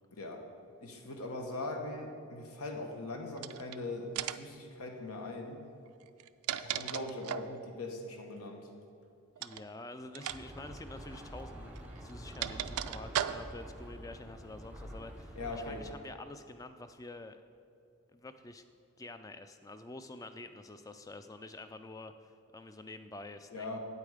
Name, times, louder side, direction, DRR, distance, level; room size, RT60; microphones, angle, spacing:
voice 1, 0.8-5.6 6.6-8.7 15.4-15.8 23.5-23.8, left 2 dB, 80° left, 3 dB, 1.1 m, -40 dB
sound 1, 3.4-3.8 4.2-4.6 6.1-7.6 9.4-9.7 10.1-10.4 10.7-10.8 11.8-13.7, right 11 dB, 80° right, 0.3 m, -37 dB
voice 2, 9.4-17.4 18.1-18.6 19.0-23.8, left 2 dB, 15° left, 9 dB, 0.3 m, -48 dB
sound 2, 10.3-15.9, equal, 5° right, 0.7 m, -47 dB
8.7 x 8.3 x 4.9 m, 2.5 s
head